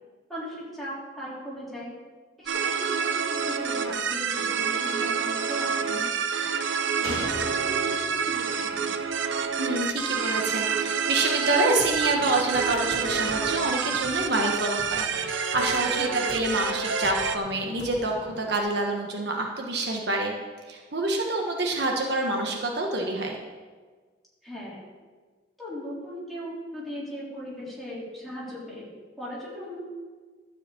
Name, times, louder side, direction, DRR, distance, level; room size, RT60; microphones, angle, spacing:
voice 1, 0.3-1.9 2.4-6.5 7.0-9.0 16.0-16.3 24.4-24.9 25.6-29.8, equal, ahead, -8 dB, 3.7 m, -38 dB
sound 1, 2.5-17.4, right 6 dB, 80° right, 0.8 m, -28 dB
Slam, 7.0-10.5 10.8-10.9, right 1 dB, 35° right, 3.9 m, -40 dB
voice 2, 9.6-20.3 20.7-23.4, right 2 dB, 60° right, 1 dB, 1.3 m, -27 dB
sound 2, 11.5-18.6, left 2 dB, 75° left, 1.2 m, -44 dB
12.5 x 5.0 x 8.5 m, 1.4 s
head